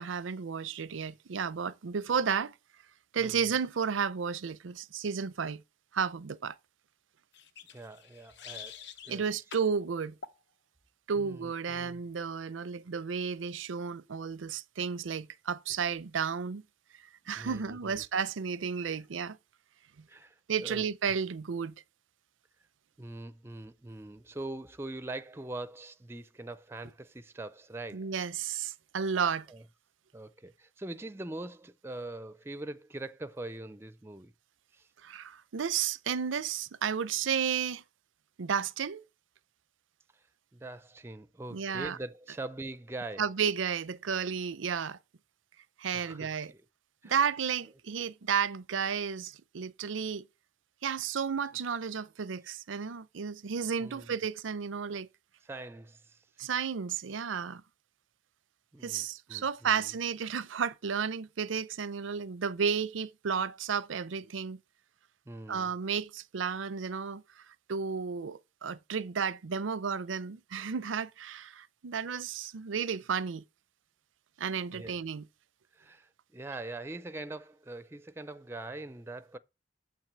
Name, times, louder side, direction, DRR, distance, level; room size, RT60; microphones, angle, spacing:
voice 1, 0.0-2.5 3.1-5.6 5.9-6.5 9.1-10.2 11.1-16.6 17.3-19.4 20.5-21.7 27.9-29.5 35.0-37.8 38.4-39.0 41.5-42.0 43.2-45.0 45.8-46.5 47.0-50.3 50.8-55.1 56.4-57.6 58.8-64.6 65.5-67.2 67.7-73.4 74.4-75.3, right 6 dB, 85° right, 0.6 m, -32 dB
voice 2, 3.2-3.5 7.7-9.2 11.2-12.0 17.4-18.0 18.8-19.0 20.1-20.9 23.0-28.1 29.5-29.6 30.1-34.3 34.7-34.9 40.5-43.2 45.9-46.7 47.0-47.1 53.8-54.1 55.4-56.2 58.7-59.9 65.3-65.7 74.7-75.0 75.7-79.4, right 2 dB, 15° right, 0.4 m, -43 dB
sound 1, 7.3-9.2 9.5-9.7 10.2-10.4, left 6 dB, 60° left, 0.8 m, -46 dB
7.1 x 5.9 x 7.3 m
head